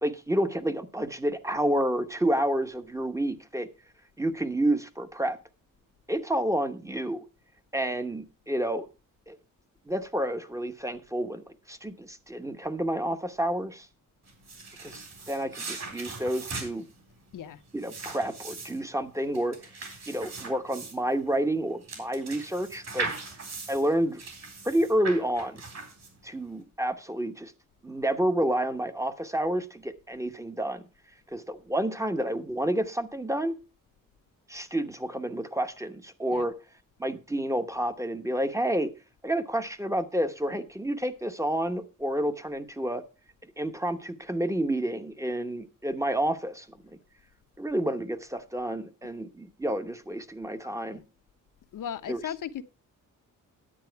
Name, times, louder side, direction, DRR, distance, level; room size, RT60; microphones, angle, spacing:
voice 1, 0.0-3.7 4.2-5.4 6.1-7.2 7.7-8.9 9.3-9.4 9.9-13.9 14.8-16.8 17.7-19.6 20.1-23.1 23.7-24.2 24.6-25.6 26.2-27.5 27.8-30.8 31.3-33.6 34.5-36.5 37.0-38.9 39.2-43.0 43.4-47.0 47.6-51.0 52.1-52.2, right 1 dB, 10° right, 0.9 m, -29 dB
sound 1, 14.3-26.4, right 4 dB, 50° right, 3.8 m, -39 dB
voice 2, 51.7-52.6, left 9 dB, 70° left, 0.9 m, -36 dB
10.0 x 8.8 x 4.5 m
cardioid pair, 120°, 33 cm